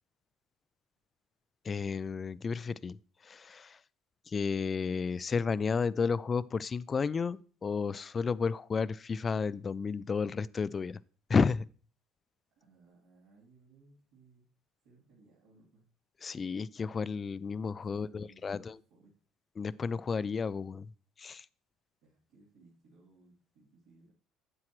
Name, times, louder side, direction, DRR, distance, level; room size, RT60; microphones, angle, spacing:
voice 1, 1.6-3.0 3.2-3.8 4.3-11.0 11.3-11.7 16.2-18.8 19.6-20.9 21.2-21.5, left 5 dB, 30° left, 0.3 m, -32 dB
voice 2, 12.5-14.4 14.8-15.9 17.8-19.1 22.0-24.1, right 3 dB, 85° right, 3.1 m, -62 dB
9.7 x 7.6 x 3.1 m
supercardioid pair, 90°, 0 cm